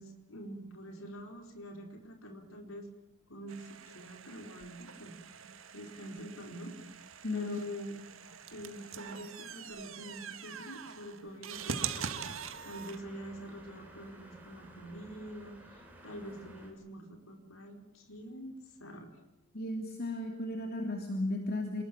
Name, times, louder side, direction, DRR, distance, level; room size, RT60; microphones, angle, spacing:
voice 1, 0.0-2.9 3.3-5.4 5.7-7.0 7.3-7.9 8.5-12.1 12.6-19.1, equal, 90° left, 3 dB, 4.6 m, -45 dB
sound 1, 3.5-13.0, right 6 dB, 75° right, 2.0 m, -43 dB
voice 2, 7.2-7.6 19.5-21.8, left 2 dB, 50° left, 3 dB, 2.9 m, -35 dB
sound 2, 11.5-16.7, right 1 dB, 10° right, 7.2 m, -54 dB
28.0 x 21.5 x 7.6 m, 0.93 s
head